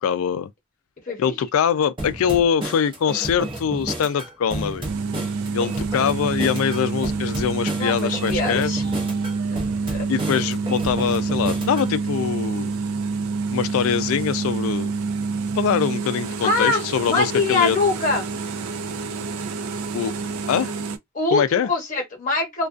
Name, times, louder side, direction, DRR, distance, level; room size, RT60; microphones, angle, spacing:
voice 1, 0.0-0.5 1.2-4.9 5.5-8.8 10.1-12.7 13.5-14.9 15.6-17.8 19.9-20.1 20.5-20.7 21.3-21.7, left 7 dB, 75° left, 0.3 m, -23 dB
sound 1, 2.0-11.9, right 1 dB, 25° right, 0.6 m, -32 dB
sound 2, 4.8-21.0, right 4 dB, 75° right, 0.4 m, -27 dB
voice 2, 7.8-8.8 9.9-10.1 16.4-16.8 17.0-18.3 21.1-22.7, left 3 dB, 35° left, 1.0 m, -23 dB
2.4 x 2.2 x 2.4 m
head